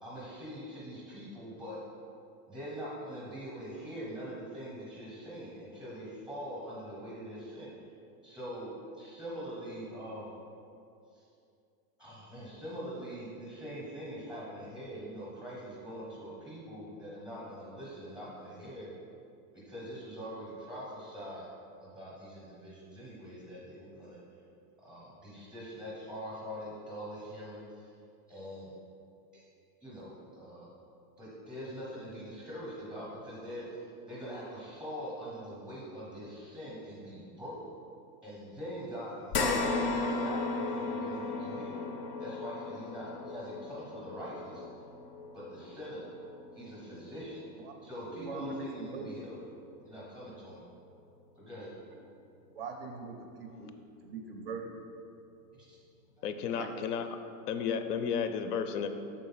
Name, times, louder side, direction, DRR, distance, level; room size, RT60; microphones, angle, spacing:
voice 1, 0.0-1.8 2.5-7.7 8.2-10.3 11.1-11.2 12.0-18.9 19.7-21.5 21.8-24.2 24.8-27.9 28.3-28.7 29.3-29.4 29.8-30.7 31.2-33.8 34.1-37.6 38.2-41.8 42.2-44.6 45.3-46.0 46.5-47.4 47.8-49.3 49.8-50.6 51.4-51.7 55.5-55.8 56.4-56.5 57.6-57.7, equal, ahead, -6 dB, 0.6 m, -43 dB
sound 1, 39.3-47.9 48.4-48.5 49.9-50.0, left 3 dB, 40° left, 0.5 m, -36 dB
voice 2, 48.2-49.2 52.6-53.7 54.0-54.7 56.5-56.7, right 4 dB, 40° right, 3 dB, 0.4 m, -41 dB
voice 3, 56.2-57.1 57.5-58.9, left 7 dB, 80° left, 8 dB, 0.7 m, -32 dB
6.2 x 3.8 x 5.6 m, 2.6 s
supercardioid pair, 175°, 46 cm